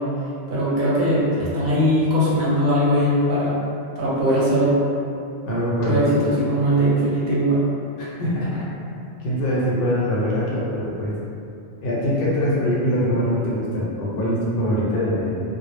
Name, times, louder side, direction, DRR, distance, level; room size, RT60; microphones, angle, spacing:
voice 1, 0.5-3.5 4.0-4.7 5.8-6.2 6.5-7.6, equal, 50° right, -9 dB, 0.8 m, -20 dB
voice 2, 5.4-6.3 8.0-8.7 9.2-11.1 11.8-15.4, equal, 65° left, -7 dB, 0.8 m, -23 dB
2.0 x 2.0 x 3.1 m, 2.7 s
omnidirectional pair, 1.2 m